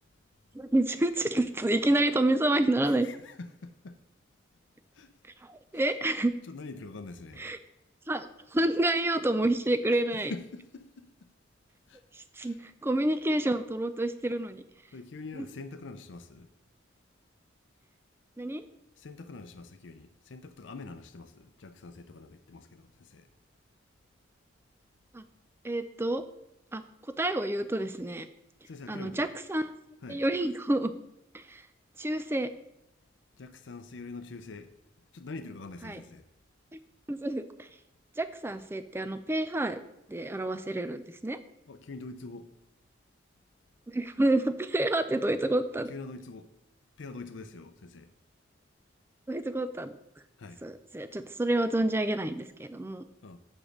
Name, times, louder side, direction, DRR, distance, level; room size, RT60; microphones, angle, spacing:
voice 1, 0.5-3.1 5.5-6.3 7.4-7.6 8.1-10.3 12.4-12.6 12.8-14.6 18.4-18.7 25.1-25.2 25.6-26.2 26.7-26.8 27.2-28.3 28.9-29.7 30.1-30.9 31.3-31.6 32.0-32.5 35.8-36.0 36.7-36.8 37.1-37.7 38.2-39.8 40.1-41.4 43.9-45.9 49.3-49.9 50.6-53.0, right 1 dB, 10° right, 0.4 m, -28 dB
voice 2, 3.0-4.0 4.9-5.1 5.7-5.8 6.5-7.5 10.3-11.1 11.9-12.0 12.4-12.6 14.9-16.5 19.0-23.3 28.7-29.3 30.0-30.2 33.4-34.7 35.1-36.2 41.7-42.5 45.9-46.5 47.0-48.1 50.4-50.6 53.2-53.4, left 3 dB, 75° left, 0.6 m, -44 dB
7.1 x 5.1 x 6.4 m
head